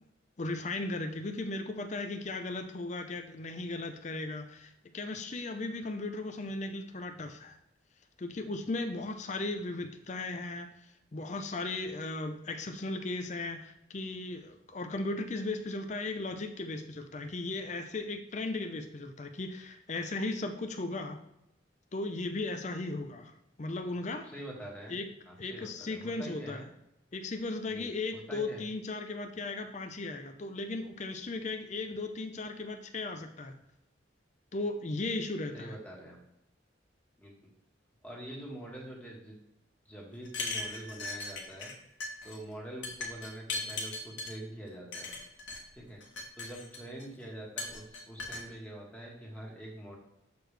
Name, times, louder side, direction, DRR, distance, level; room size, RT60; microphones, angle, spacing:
voice 1, 0.4-7.6 8.2-21.2 21.9-24.3 24.9-25.1 25.4-26.6 27.1-33.6 34.5-35.8, left 2 dB, 35° left, 6 dB, 0.5 m, -36 dB
voice 2, 24.2-25.0 25.3-26.7 27.7-28.6 35.5-36.2 37.2-37.3 38.0-39.4 39.8-41.7 42.2-45.1 45.7-46.0 46.4-50.0, right 1 dB, 5° left, -3 dB, 1.5 m, -45 dB
sound 1, 40.2-41.7 42.0-42.4 42.8-44.3 44.9-45.6 46.0-47.0 47.6-48.4, left 3 dB, 75° left, 1.4 m, -38 dB
6.8 x 6.0 x 3.3 m, 0.85 s
head